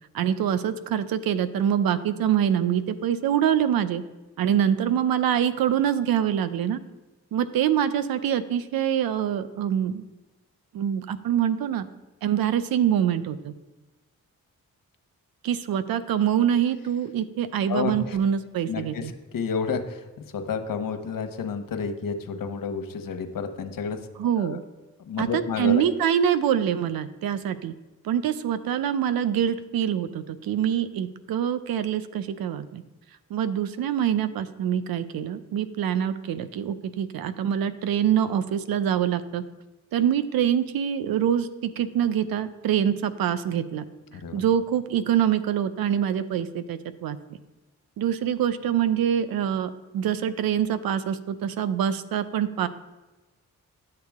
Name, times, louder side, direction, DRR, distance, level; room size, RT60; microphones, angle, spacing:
voice 1, 0.1-4.0 4.4-6.8 7.3-10.0 10.7-11.9 12.2-13.5 15.4-19.1 24.2-24.6 25.2-27.7 28.0-32.8 33.3-39.4 39.9-43.9 44.3-47.2 48.0-52.7, right 9 dB, 75° right, 13 dB, 0.6 m, -25 dB
voice 2, 17.7-18.2 18.7-24.0 24.4-24.6 25.0-25.9 44.1-44.4, left 5 dB, 65° left, 7 dB, 1.0 m, -30 dB
10.5 x 6.7 x 3.5 m, 1.1 s
supercardioid pair, 45°, 36 cm